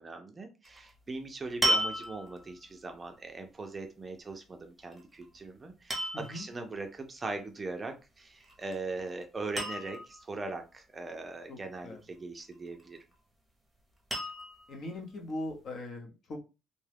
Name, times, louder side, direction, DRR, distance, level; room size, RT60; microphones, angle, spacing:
voice 1, 0.0-13.0, right 3 dB, 20° right, 5 dB, 0.5 m, -40 dB
sound 1, 0.6-0.9 1.6-2.5 4.9-5.3 5.9-6.4 8.4-8.8 9.1-9.2 9.6-10.2 12.5-13.1 14.1-14.7 15.5-15.6, right 1 dB, 5° right, 0.8 m, -32 dB
voice 2, 6.1-6.5 11.5-11.6 11.8-12.0 14.7-16.4, left 1 dB, 50° left, 2 dB, 0.8 m, -40 dB
2.6 x 2.3 x 3.3 m, 0.29 s
cardioid pair, 135°, 0 cm